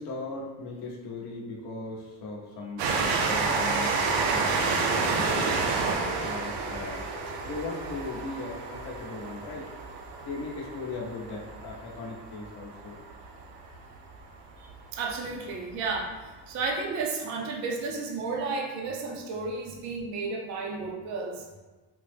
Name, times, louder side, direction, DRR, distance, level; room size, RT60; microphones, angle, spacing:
voice 1, 0.0-3.9 4.3-4.5 4.8-5.6 6.2-7.1 7.4-9.7 10.2-13.0, left 3 dB, 60° left, -2 dB, 0.7 m, -38 dB
Train, 2.8-14.0 14.7-14.8 15.0-15.1, right 4 dB, 85° right, 0.6 m, -29 dB
voice 2, 14.6-21.4, right 4 dB, 40° right, 0 dB, 0.4 m, -33 dB
3.6 x 2.0 x 3.2 m, 1.2 s
cardioid pair, 150°, 44 cm